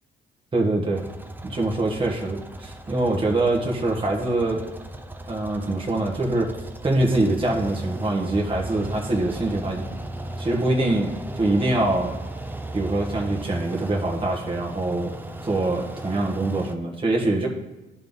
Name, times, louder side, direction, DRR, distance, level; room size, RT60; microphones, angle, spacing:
voice 1, 0.5-1.1 1.4-4.7 5.3-6.5 6.8-9.9 10.4-12.2 12.7-15.1 15.4-17.5, right 2 dB, 25° right, -1 dB, 1.2 m, -24 dB
sound 1, 0.9-16.7, right 1 dB, 10° right, 0.6 m, -36 dB
11.5 x 3.9 x 3.6 m, 1.1 s
cardioid pair, 90°, 20 cm